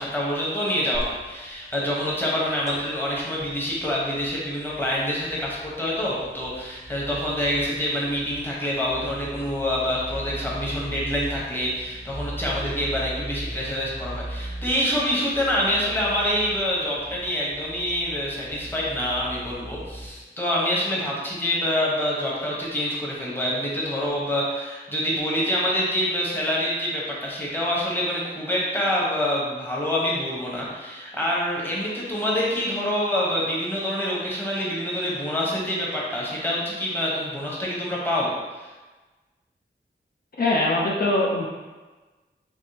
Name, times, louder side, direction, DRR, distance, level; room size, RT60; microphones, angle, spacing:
voice 1, 0.0-38.3 38.6-38.7, equal, 10° left, -5 dB, 1.0 m, -26 dB
sound 1, 0.9-20.1, right 1 dB, 15° right, 0.6 m, -39 dB
voice 2, 40.4-41.5, left 2 dB, 55° left, -4 dB, 0.5 m, -22 dB
3.5 x 2.9 x 2.8 m, 1.2 s
wide cardioid pair, 55°, 19 cm